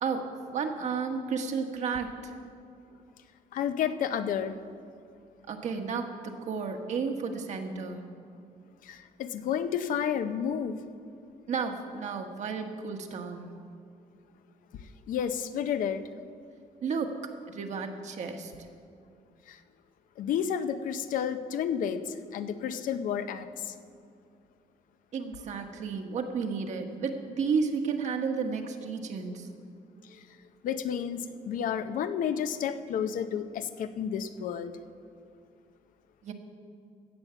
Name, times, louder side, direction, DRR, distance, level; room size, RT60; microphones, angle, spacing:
voice 1, 0.0-2.4 5.5-8.0 11.5-13.5 16.8-18.5 25.1-29.5 36.2-36.3, right 5 dB, 55° right, 5 dB, 1.3 m, -32 dB
voice 2, 3.5-4.6 8.8-10.8 15.1-16.0 19.5-19.6 20.2-23.7 30.0-30.2 30.6-34.7, left 8 dB, 70° left, 10 dB, 0.7 m, -31 dB
16.5 x 7.2 x 7.0 m, 2.4 s
cardioid pair, 135°, 14 cm